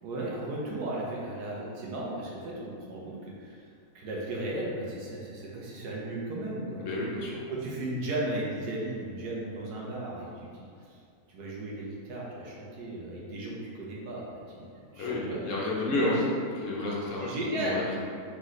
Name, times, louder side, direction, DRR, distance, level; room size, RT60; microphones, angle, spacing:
voice 1, 0.0-3.7 3.9-6.8 7.5-11.0 11.3-14.7 14.9-15.4 15.9-16.2 17.2-17.8, right 1 dB, 90° right, -4 dB, 1.4 m, -35 dB
voice 2, 6.8-7.4 14.9-16.2 16.6-18.0, left 2 dB, 60° left, -4 dB, 0.9 m, -31 dB
3.9 x 3.8 x 3.1 m, 2.3 s
omnidirectional pair, 1.6 m